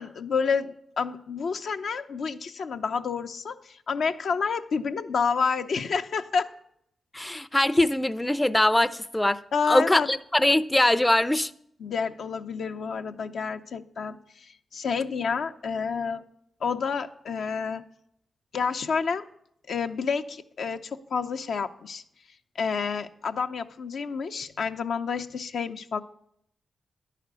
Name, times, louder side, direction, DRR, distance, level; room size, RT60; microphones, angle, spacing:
voice 1, 0.0-6.5 9.5-10.1 11.8-16.2 16.6-17.8 18.5-19.3 19.7-22.0 22.6-26.0, left 5 dB, 75° left, 0.5 m, -29 dB
voice 2, 7.1-9.4 9.7-11.5, left 1 dB, 15° left, 0.4 m, -22 dB
10.5 x 5.0 x 8.0 m
supercardioid pair, 45°, 0 cm